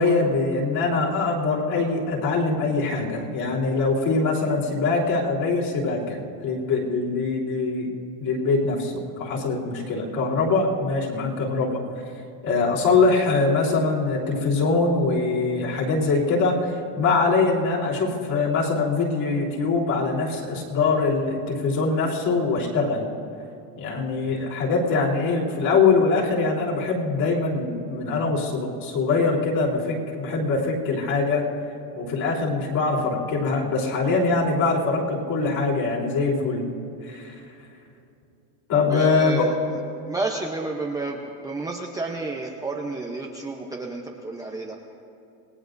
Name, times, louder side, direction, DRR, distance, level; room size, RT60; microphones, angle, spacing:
voice 1, 0.0-7.9 8.2-11.8 12.4-23.0 23.8-31.4 31.9-36.7 37.0-37.4 38.7-39.5, left 3 dB, 45° left, -3 dB, 3.7 m, -23 dB
voice 2, 38.9-39.5 40.1-44.7, right 3 dB, 5° right, -1 dB, 0.7 m, -31 dB
27.5 x 18.5 x 2.6 m, 2.7 s
cardioid pair, 150°, 47 cm